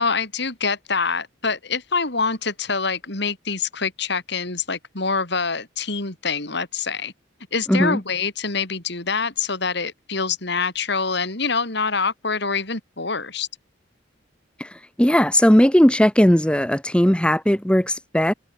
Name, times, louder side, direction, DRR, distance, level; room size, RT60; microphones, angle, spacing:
voice 1, 0.0-7.1 7.5-13.5, left 4 dB, 65° left, 4.9 m, -25 dB
voice 2, 7.7-8.0 14.6-18.3, equal, 5° left, 1.1 m, -17 dB
head